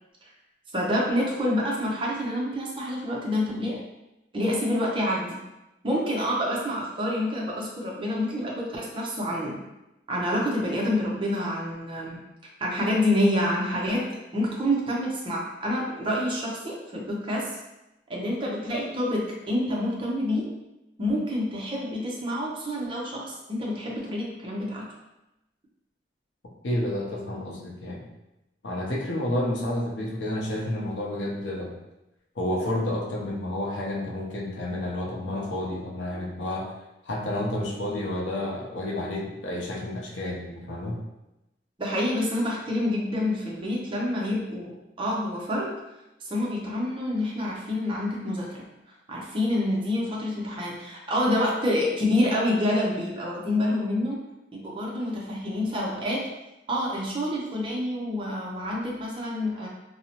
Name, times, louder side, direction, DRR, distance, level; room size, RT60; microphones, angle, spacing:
voice 1, 0.7-3.8 4.3-5.4 5.8-9.6 10.1-12.2 12.6-14.0 14.3-17.6 18.1-20.5 21.0-24.9 41.8-45.8 46.2-48.7 49.1-54.2 54.5-56.2 56.7-59.7, left 1 dB, 30° right, -3 dB, 0.5 m, -27 dB
voice 2, 26.6-28.1 28.6-31.8 32.4-36.7 37.0-41.0, left 1 dB, 85° left, -2 dB, 0.6 m, -30 dB
2.7 x 2.0 x 2.8 m, 0.94 s
head